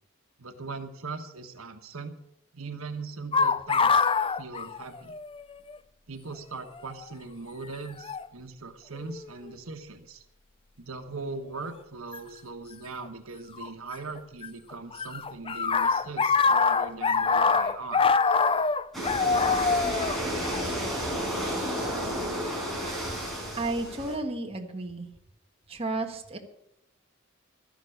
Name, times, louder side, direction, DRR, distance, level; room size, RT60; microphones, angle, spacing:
voice 1, 0.4-2.1 2.5-4.1 4.4-5.1 6.1-10.2 10.8-18.0, right 4 dB, 85° right, 7 dB, 1.3 m, -40 dB
sound 1, 3.3-5.4 5.7-5.8 6.8-7.0 8.0-8.3 9.0-9.5 12.1-12.2 13.6-14.5 14.7-21.3, left 5 dB, 25° left, 0.5 m, -25 dB
sound 2, 18.9-24.2, equal, ahead, 5.0 m, -31 dB
voice 2, 23.5-25.1 25.7-26.4, right 2 dB, 30° right, 3 dB, 1.5 m, -33 dB
13.0 x 10.5 x 6.6 m, 0.78 s
head